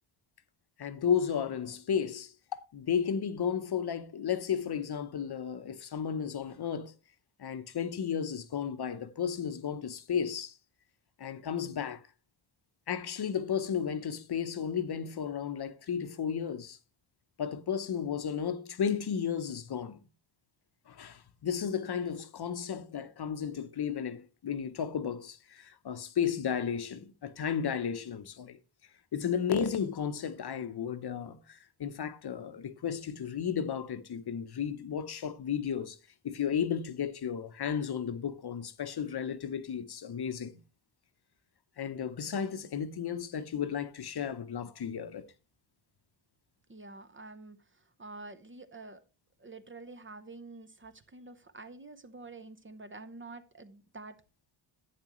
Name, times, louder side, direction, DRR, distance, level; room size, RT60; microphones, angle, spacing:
voice 1, 0.8-6.9 7.4-10.6 11.2-12.0 12.9-16.8 17.4-20.0 20.9-28.6 29.1-36.0 36.2-40.6 41.8-45.2, left 7 dB, 50° left, 0.9 m, -33 dB
voice 2, 46.7-49.0 49.4-54.2, right 3 dB, 25° right, 0.7 m, -48 dB
11.0 x 8.9 x 3.0 m
wide cardioid pair, 135°, 49 cm